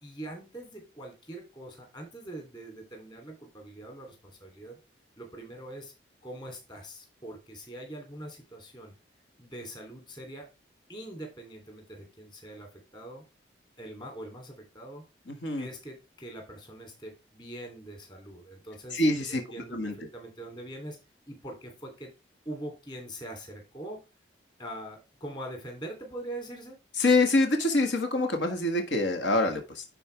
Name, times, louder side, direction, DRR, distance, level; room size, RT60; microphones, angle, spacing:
voice 1, 0.0-4.8 5.2-5.9 6.2-8.9 9.4-10.5 10.9-13.2 13.8-15.0 15.6-21.0 21.3-22.1 22.4-24.0 24.6-26.8, right 1 dB, 25° left, 3 dB, 3.0 m, -43 dB
voice 2, 18.9-19.4 19.7-19.9 27.0-29.8, left 2 dB, 75° left, 5 dB, 1.7 m, -25 dB
11.0 x 4.6 x 3.4 m, 0.27 s
head